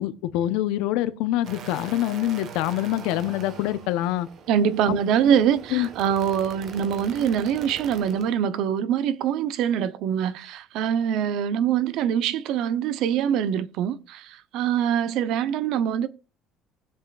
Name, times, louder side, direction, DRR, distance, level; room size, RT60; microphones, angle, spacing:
voice 1, 0.0-4.3 4.9-5.0 5.7-5.9, left 14 dB, 85° left, 0.9 m, -25 dB
sound 1, 1.4-8.3, right 6 dB, 50° right, 1.4 m, -42 dB
voice 2, 4.5-16.1, right 8 dB, 65° right, 0.8 m, -24 dB
20.5 x 7.2 x 2.5 m
cardioid pair, 140°, 0 cm